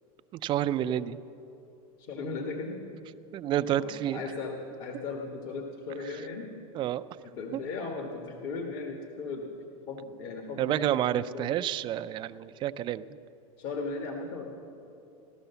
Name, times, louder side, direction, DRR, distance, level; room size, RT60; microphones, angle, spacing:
voice 1, 0.4-1.2 3.3-4.2 6.7-7.0 7.5-7.6 10.6-13.0, right 12 dB, 25° right, 12 dB, 0.4 m, -29 dB
voice 2, 2.0-2.8 3.7-6.5 7.2-9.5 9.9-11.5 13.6-14.4, left 4 dB, 45° left, 2 dB, 1.7 m, -37 dB
16.0 x 12.5 x 6.9 m, 2.7 s
supercardioid pair, 145°, 18 cm